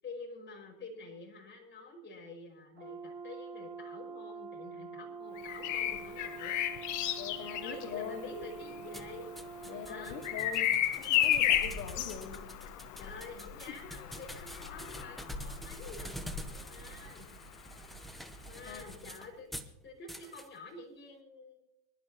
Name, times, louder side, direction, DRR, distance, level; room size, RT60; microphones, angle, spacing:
voice 1, 0.0-6.7 7.5-9.3 9.9-10.2 13.0-17.3 18.5-19.5 19.8-21.6, left 3 dB, 20° left, -1 dB, 5.7 m, -48 dB
Brass instrument, 2.8-10.5, right 5 dB, 25° right, 2.9 m, -46 dB
Bird vocalization bird call bird song, 5.4-17.2 18.9-19.1, left 11 dB, 40° left, 1.3 m, -34 dB
voice 2, 7.2-8.3 9.6-10.7 11.1-12.4 18.7-18.8, left 7 dB, 75° left, 2 dB, 2.2 m, -42 dB
sound 1, 8.9-19.7 20.1-20.5, right 1 dB, ahead, 0.6 m, -47 dB
25.5 x 12.0 x 2.9 m, 0.82 s
supercardioid pair, 130°, 48 cm